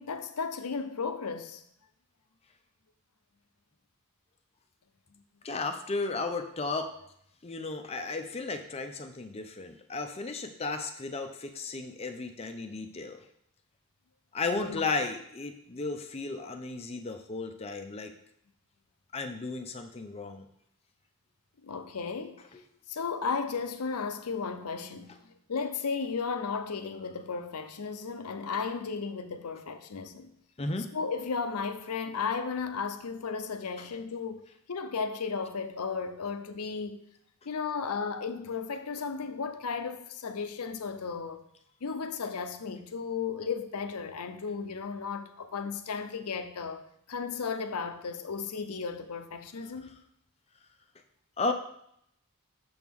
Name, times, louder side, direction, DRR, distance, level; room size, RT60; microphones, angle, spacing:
voice 1, 0.0-1.6 14.5-14.8 21.6-22.4 22.9-25.1 25.5-30.3 30.9-34.4 34.7-37.0 37.5-41.4 41.8-50.0, left 5 dB, 85° left, 0.7 m, -34 dB
voice 2, 5.4-6.9 7.4-13.2 14.3-18.1 19.1-20.4 22.5-22.6 30.6-30.9 51.4-51.5, left 3 dB, 25° left, 0.5 m, -34 dB
6.9 x 6.1 x 3.6 m
head